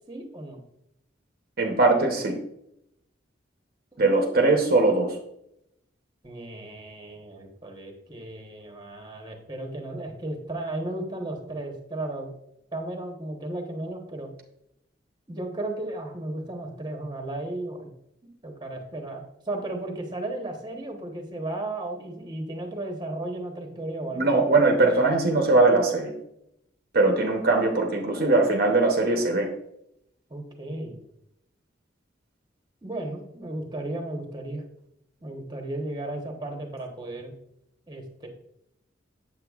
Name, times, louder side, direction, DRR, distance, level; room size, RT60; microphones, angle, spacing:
voice 1, 0.1-0.6 3.9-4.0 6.2-12.3 12.7-14.3 15.3-17.9 18.4-24.3 30.3-31.0 32.8-34.6 35.2-37.3 37.9-38.3, right 2 dB, 25° right, 2 dB, 1.1 m, -34 dB
voice 2, 1.6-2.4 4.0-5.2 24.1-26.1 26.9-29.5, right 3 dB, 50° right, 2 dB, 0.8 m, -21 dB
7.7 x 7.5 x 2.4 m, 0.79 s
head